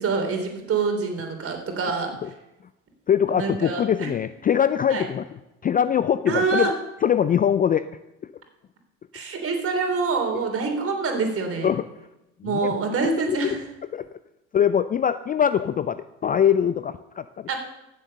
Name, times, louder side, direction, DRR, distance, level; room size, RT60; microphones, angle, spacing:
voice 1, 0.0-2.1 3.3-4.1 4.9-5.0 6.3-6.7 9.1-11.7 12.4-13.6 17.5-17.6, right 4 dB, 40° right, 4 dB, 3.4 m, -25 dB
voice 2, 3.1-5.3 5.6-6.7 7.0-7.9 10.3-10.4 11.6-11.9 12.4-12.8 13.3-13.6 13.9-14.1 14.5-17.5, left 8 dB, 25° left, 13 dB, 0.4 m, -22 dB
15.5 x 7.5 x 6.6 m, 0.95 s
supercardioid pair, 90°, 35 cm